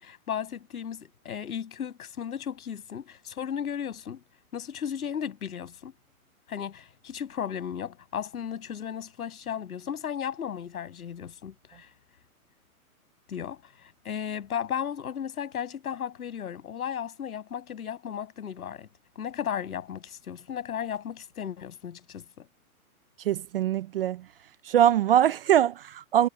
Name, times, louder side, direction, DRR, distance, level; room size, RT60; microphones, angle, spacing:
voice 1, 0.0-4.2 4.5-5.9 6.5-11.9 13.3-18.9 19.2-22.5, left 8 dB, 75° left, 7.7 m, -35 dB
voice 2, 23.3-24.2 24.7-26.3, right 11 dB, 40° right, 0.6 m, -22 dB
hypercardioid pair, 160°, 44 cm